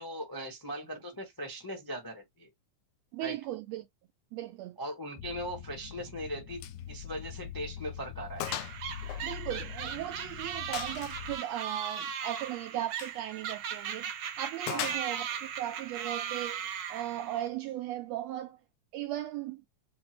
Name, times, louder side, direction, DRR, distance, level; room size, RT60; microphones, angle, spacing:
voice 1, 0.0-2.5 3.2-3.4 4.8-8.5 14.7-15.0, equal, 25° left, 0.4 m, -39 dB
voice 2, 3.1-3.9 4.3-4.8 9.0-14.1 14.4-18.6 18.9-19.6, right 13 dB, 85° right, 1.5 m, -37 dB
sound 1, 5.2-11.4, left 9 dB, 70° left, 1.8 m, -44 dB
Gunshot gunfire, 6.6-6.8 7.2-7.3 7.7-7.8 8.4-8.8 9.1-10.1 10.7-11.2 12.9-13.2 14.7-15.4, left 12 dB, 90° left, 2.1 m, -38 dB
sound 2, 8.4-17.5, right 8 dB, 65° right, 1.3 m, -38 dB
6.9 x 2.6 x 3.0 m
omnidirectional pair, 3.5 m